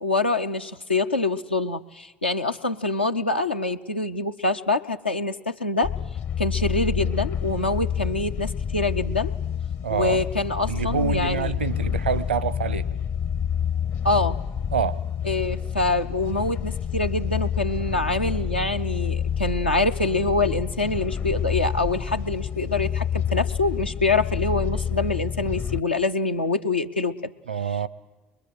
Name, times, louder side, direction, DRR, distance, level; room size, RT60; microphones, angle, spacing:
voice 1, 0.0-5.9 6.4-9.3 9.9-11.5 14.0-14.4 15.2-27.3, left 3 dB, 85° left, 0.7 m, -25 dB
sound 1, 5.8-25.8, left 8 dB, 45° left, 0.8 m, -28 dB
voice 2, 9.8-10.2 10.7-12.9 14.7-15.0 27.5-27.9, right 6 dB, 80° right, 0.8 m, -26 dB
24.0 x 22.0 x 7.8 m
figure-of-eight pair, 65°, 6 cm